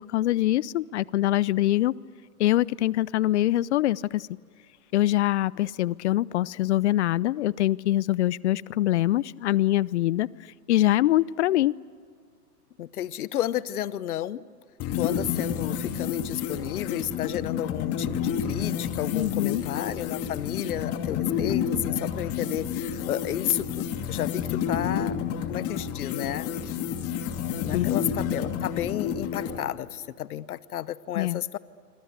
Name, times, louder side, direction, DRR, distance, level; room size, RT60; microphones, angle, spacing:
voice 1, 0.0-1.9 2.4-4.3 4.9-10.3 10.7-11.7 19.1-19.6 27.7-27.9 31.2-31.4, left 15 dB, 45° left, 23 dB, 0.6 m, -24 dB
voice 2, 12.8-14.4 14.9-25.2 25.5-26.8 27.6-31.6, left 12 dB, 65° left, 18 dB, 1.1 m, -32 dB
sound 1, 14.8-29.6, left 8 dB, 30° left, 2.7 m, -30 dB
26.5 x 26.5 x 8.2 m, 2.1 s
hypercardioid pair, 120°, 47 cm